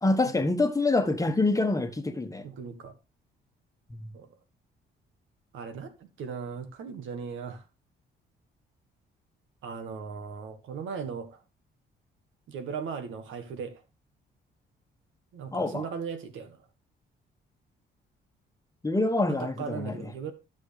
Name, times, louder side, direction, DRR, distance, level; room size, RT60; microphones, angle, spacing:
voice 1, 0.0-2.4 4.0-4.1 15.5-15.8 18.8-20.0, left 2 dB, 15° left, 1.4 m, -26 dB
voice 2, 2.4-2.9 4.1-4.3 5.5-7.6 9.6-11.4 12.5-13.8 15.3-16.6 19.3-20.3, right 6 dB, 80° right, 1.7 m, -38 dB
12.5 x 6.3 x 3.2 m
cardioid pair, 90°, 20 cm